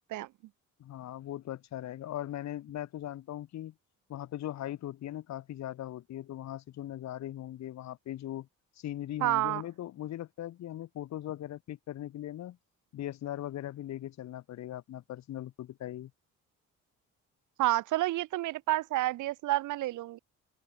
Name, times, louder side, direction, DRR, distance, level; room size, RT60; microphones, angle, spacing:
voice 1, 0.8-3.7 4.1-8.5 8.8-12.6 12.9-16.1, left 12 dB, 65° left, 1.0 m, -39 dB
voice 2, 9.2-9.6 17.6-20.2, right 16 dB, 80° right, 0.8 m, -29 dB
open air
cardioid pair, 90°, 30 cm